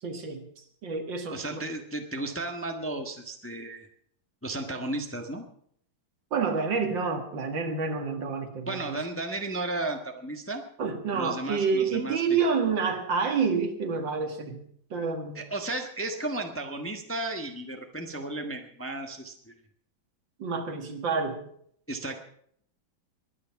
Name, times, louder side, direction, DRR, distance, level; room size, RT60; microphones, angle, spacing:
voice 1, 0.0-1.6 6.3-9.0 10.8-14.6 14.9-15.4 20.4-21.4, right 5 dB, 70° right, 5 dB, 2.5 m, -28 dB
voice 2, 1.3-3.9 4.4-5.5 8.7-10.6 11.1-12.2 15.3-19.5 21.9-22.2, right 2 dB, 10° left, 4 dB, 1.1 m, -34 dB
22.0 x 9.8 x 5.9 m, 0.66 s
omnidirectional pair, 2.1 m